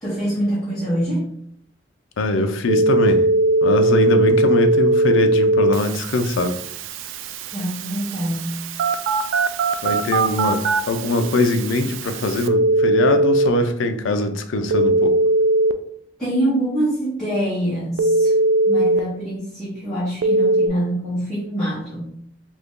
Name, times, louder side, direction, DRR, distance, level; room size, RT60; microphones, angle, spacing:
voice 1, 0.0-1.3 7.5-8.6 16.2-18.3 18.7-22.2, right 1 dB, ahead, -13 dB, 1.1 m, -25 dB
voice 2, 2.2-3.2 3.6-6.6 9.8-15.1, left 2 dB, 90° left, 7 dB, 0.5 m, -22 dB
Telephone, 2.7-13.5 14.7-15.7 18.0-19.0 20.2-20.7, right 2 dB, 90° right, 0.3 m, -19 dB
2.9 x 2.6 x 3.5 m, 0.65 s
head